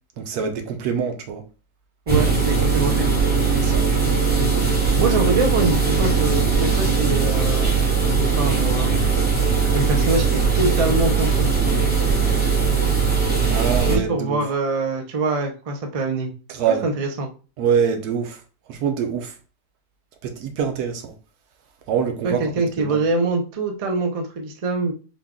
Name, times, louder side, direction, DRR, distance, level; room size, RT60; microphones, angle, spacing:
voice 1, 0.2-1.4 3.6-3.9 13.5-14.4 16.5-16.9 17.6-18.4 18.7-19.4 20.2-21.1 21.9-23.0, right 7 dB, 90° right, 1.3 m, -25 dB
sound 1, 2.1-14.0, right 5 dB, 10° right, 0.7 m, -19 dB
voice 2, 2.1-3.1 5.0-7.7 8.3-9.0 9.7-11.8 13.9-16.3 16.7-17.3 22.2-24.9, right 3 dB, 55° right, 0.4 m, -24 dB
3.7 x 2.3 x 3.6 m
omnidirectional pair, 1.6 m